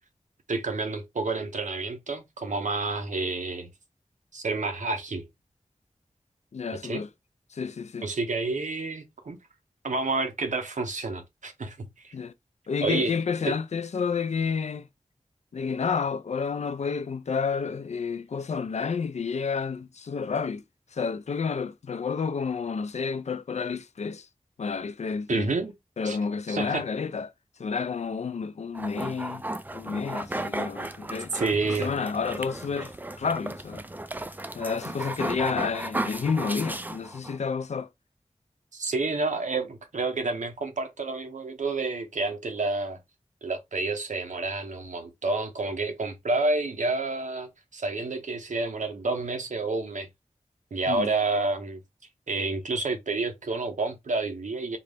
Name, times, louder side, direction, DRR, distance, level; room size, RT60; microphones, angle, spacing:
voice 1, 0.5-3.7 4.3-5.2 6.8-7.0 8.0-9.4 9.8-12.1 12.8-13.1 13.5-13.6 25.3-25.7 26.0-26.2 26.5-26.8 31.3-31.9 38.7-43.0 43.4-50.1 50.7-51.8 52.3-54.8, right 3 dB, 85° right, 0.7 m, -29 dB
voice 2, 6.5-7.1 7.5-8.1 12.1-12.3 12.7-14.9 15.5-20.6 20.9-24.3 24.6-25.5 26.0-27.3 27.6-29.4 29.7-31.3 31.7-32.9 33.2-33.8 34.5-37.9 50.9-51.1, left 5 dB, 65° left, 0.4 m, -30 dB
sound 1, 28.7-37.4, right 1 dB, 15° right, 0.3 m, -35 dB
3.8 x 2.0 x 3.3 m
wide cardioid pair, 55°, 12 cm